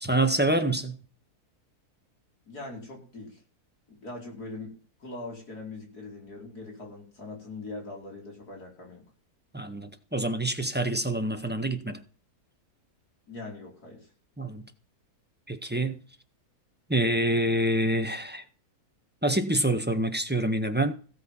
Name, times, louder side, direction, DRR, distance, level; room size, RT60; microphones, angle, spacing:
voice 1, 0.0-1.0 9.5-12.0 14.4-14.7 15.5-16.0 16.9-18.4 19.2-20.9, right 1 dB, 5° right, 1.4 m, -26 dB
voice 2, 2.5-3.4 3.9-9.0 13.3-14.1, left 2 dB, 80° left, 5.4 m, -41 dB
16.5 x 7.7 x 5.7 m
omnidirectional pair, 1.6 m